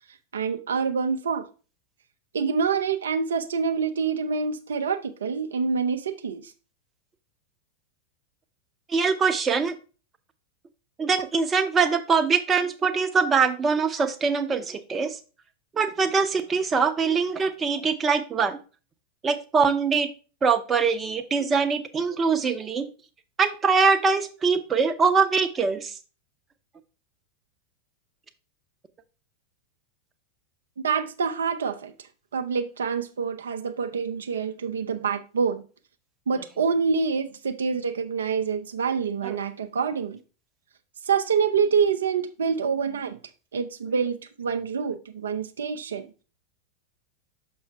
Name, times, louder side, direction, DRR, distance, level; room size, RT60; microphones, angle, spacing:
voice 1, 0.3-1.5 2.3-6.5 30.8-31.9 32.3-35.7 36.3-40.2 41.0-43.2 43.5-46.1, right 6 dB, 65° right, 8 dB, 0.4 m, -26 dB
voice 2, 8.9-9.8 11.0-15.2 15.7-18.6 19.2-20.1 20.4-22.9 23.4-25.9 39.2-39.3, right 5 dB, 20° right, 9 dB, 0.6 m, -23 dB
6.3 x 5.3 x 3.3 m, 0.35 s
figure-of-eight pair, 90°, 0 cm